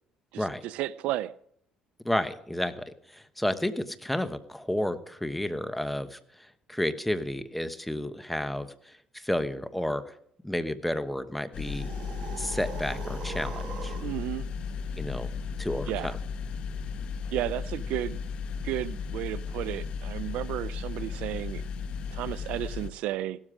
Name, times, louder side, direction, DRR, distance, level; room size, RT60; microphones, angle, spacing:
voice 1, 0.3-1.3 14.0-14.5 15.9-16.1 17.3-18.2 18.6-21.6 22.1-23.4, right 14 dB, 80° right, 18 dB, 0.6 m, -33 dB
voice 2, 2.0-10.1 10.4-11.9 12.4-13.9 15.0-15.3 15.6-16.2, left 1 dB, 5° left, 11 dB, 1.1 m, -31 dB
sound 1, 11.5-22.9, left 5 dB, 55° left, 1.2 m, -35 dB
sound 2, 11.6-14.2, right 7 dB, 50° right, 1.6 m, -42 dB
16.5 x 13.0 x 5.0 m, 0.64 s
cardioid pair, 115°, 2 cm